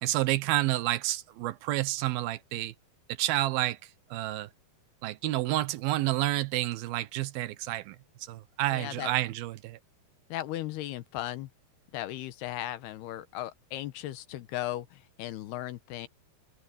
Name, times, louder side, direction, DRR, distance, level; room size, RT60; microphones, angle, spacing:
voice 1, 0.0-2.7 3.1-3.8 4.1-4.5 5.0-9.8, right 16 dB, 75° right, 2.6 m, -29 dB
voice 2, 8.7-9.1 10.3-11.5 11.9-16.1, left 14 dB, 90° left, 3.2 m, -36 dB
omnidirectional pair, 4.5 m